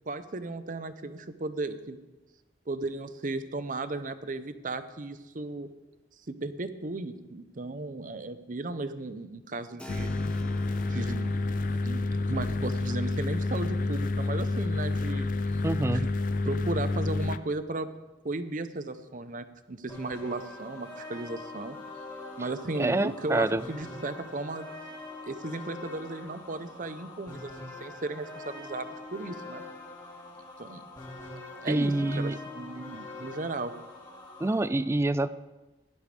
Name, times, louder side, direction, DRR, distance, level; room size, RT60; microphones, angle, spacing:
voice 1, 0.1-2.0 2.7-5.7 6.3-10.1 10.8-11.4 11.8-15.3 15.8-16.1 16.4-17.9 18.2-21.8 22.4-24.7 25.2-29.6 30.6-30.8 31.6-33.7, right 2 dB, 45° right, 11 dB, 0.7 m, -35 dB
Keyboard (musical), 9.8-18.2, left 1 dB, 5° left, 0.8 m, -52 dB
sound 1, 9.9-17.4, left 2 dB, 45° left, 0.5 m, -29 dB
voice 2, 15.6-16.1 22.8-23.6 31.7-32.4 34.4-35.3, right 2 dB, 15° right, 15 dB, 0.3 m, -26 dB
sound 2, 19.9-34.7, left 2 dB, 25° left, 2.3 m, -44 dB
17.0 x 11.0 x 3.4 m, 1.1 s
head